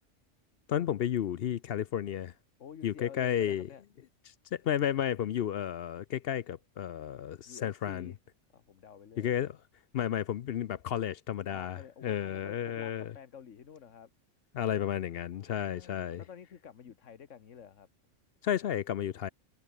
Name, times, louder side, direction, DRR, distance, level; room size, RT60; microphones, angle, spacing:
voice 1, 0.7-2.3 2.8-3.7 4.5-8.1 9.2-9.6 9.9-13.1 14.5-16.2 18.4-19.3, left 10 dB, 60° left, 0.7 m, -32 dB
voice 2, 2.6-3.8 7.5-8.2 8.5-9.3 11.5-14.1 15.3-17.9 19.1-19.3, left 7 dB, 90° left, 1.5 m, -50 dB
omnidirectional pair, 1.3 m